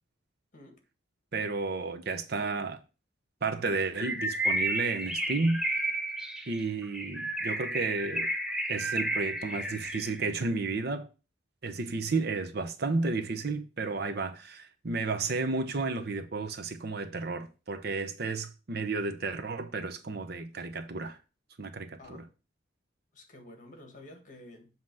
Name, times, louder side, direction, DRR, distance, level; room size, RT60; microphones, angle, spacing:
voice 1, 1.3-2.8 3.4-5.6 6.5-8.3 8.7-11.1 11.6-21.2 21.6-22.2, right 3 dB, 55° right, 0.7 m, -32 dB
Bird, 3.9-10.3, right 1 dB, 5° right, 0.7 m, -32 dB
voice 2, 23.1-24.7, left 1 dB, 40° left, 1.7 m, -50 dB
7.5 x 3.0 x 6.0 m
head